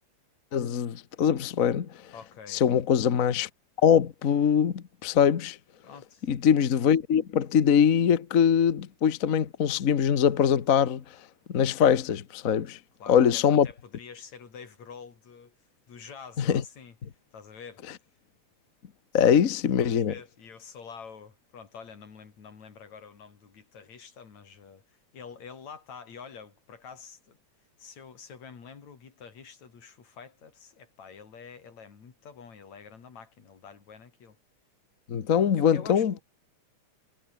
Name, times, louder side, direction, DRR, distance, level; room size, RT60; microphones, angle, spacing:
voice 1, 0.5-2.1 2.5-3.5 3.8-5.6 6.3-11.0 11.5-12.8 13.1-13.7 16.4-16.6 19.1-20.1 35.1-36.1, left 8 dB, 50° left, 0.9 m, -23 dB
voice 2, 2.1-2.6 5.8-6.3 13.0-15.6 15.9-17.0 17.3-17.8 19.8-27.4 27.8-34.4 35.5-36.2, left 6 dB, 70° left, 4.6 m, -47 dB
omnidirectional pair, 3.3 m